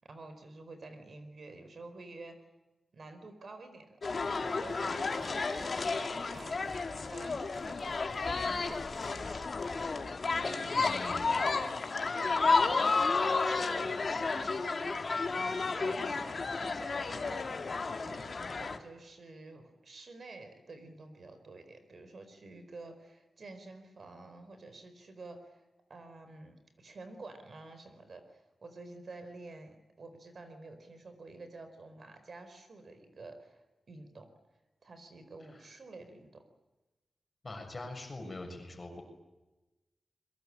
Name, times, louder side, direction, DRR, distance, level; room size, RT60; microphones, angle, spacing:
voice 1, 0.0-2.5 2.9-8.0 8.2-9.9 10.3-10.7 12.2-15.0 15.3-17.7 18.0-25.6 25.9-34.3 34.8-36.4, right 2 dB, 50° right, 8 dB, 4.5 m, -50 dB
sound 1, 4.0-18.8, left 4 dB, 45° left, 2.4 m, -32 dB
sound 2, 4.7-9.9, left 1 dB, 10° left, 5.5 m, -54 dB
voice 2, 10.7-11.5 35.5-35.6 37.4-39.0, left 2 dB, 30° left, 4 dB, 6.6 m, -43 dB
28.0 x 22.5 x 8.8 m, 1.1 s
wide cardioid pair, 165°, 0 cm